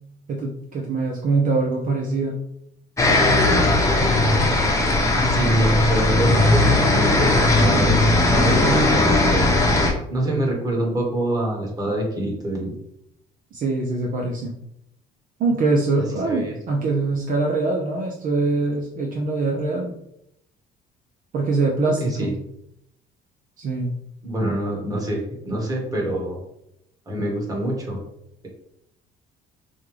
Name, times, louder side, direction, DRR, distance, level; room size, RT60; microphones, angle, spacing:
voice 1, 0.3-2.4 3.8-3.9 10.2-10.4 13.5-14.5 15.4-19.9 21.3-22.3 23.6-23.9, right 3 dB, 55° right, 0 dB, 0.7 m, -23 dB
sound 1, 3.0-9.9, left 2 dB, 15° left, 0.9 m, -18 dB
voice 2, 3.7-4.2 5.1-9.6 10.1-12.8 16.3-16.5 22.0-22.3 24.2-26.4 27.1-28.0, right 1 dB, 20° right, -1 dB, 1.4 m, -26 dB
5.3 x 2.3 x 3.2 m, 0.79 s
cardioid pair, 110°, 17 cm